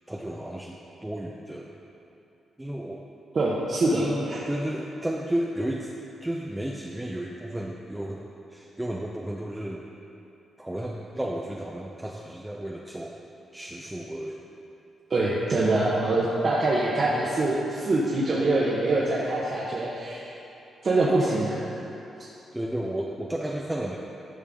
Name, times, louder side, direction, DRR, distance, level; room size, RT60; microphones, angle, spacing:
voice 1, 0.1-1.7 2.6-3.1 3.9-5.9 6.2-8.2 8.5-9.8 10.6-13.1 13.5-14.4 22.5-24.0, right 1 dB, 10° right, -2 dB, 0.7 m, -33 dB
voice 2, 3.3-4.4 15.1-20.3 20.8-21.6, right 2 dB, 50° right, -6 dB, 1.2 m, -24 dB
12.5 x 5.6 x 3.8 m, 2.9 s
supercardioid pair, 60°, 0 cm